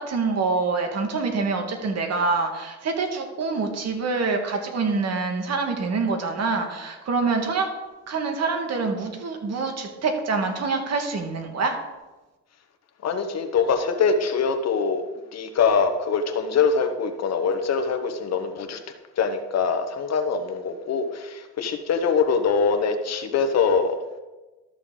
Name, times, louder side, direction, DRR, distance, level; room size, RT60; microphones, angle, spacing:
voice 1, 0.0-7.7 8.1-11.8, right 4 dB, 60° right, 4 dB, 1.8 m, -26 dB
voice 2, 13.0-15.0 15.3-18.8 19.2-24.0, left 5 dB, 60° left, 7 dB, 1.1 m, -23 dB
13.0 x 6.7 x 3.8 m, 1.1 s
cardioid pair, 90°, 30 cm